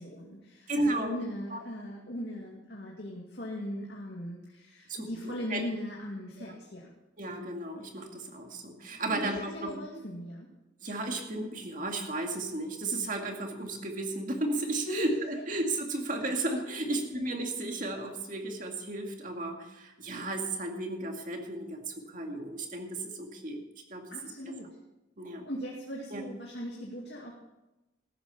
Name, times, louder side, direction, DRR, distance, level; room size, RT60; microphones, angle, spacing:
voice 1, 0.0-6.9 9.1-10.5 14.8-15.1 16.9-17.0 24.1-24.7 25.4-27.3, left 1 dB, 60° left, -3 dB, 2.3 m, -39 dB
voice 2, 0.7-1.2 1.5-1.6 4.9-5.6 7.2-9.7 10.8-23.6 23.9-24.1 24.5-24.6 25.2-25.5 26.1-26.2, right 2 dB, 45° right, 3 dB, 2.1 m, -34 dB
15.0 x 12.5 x 4.3 m, 1.0 s
head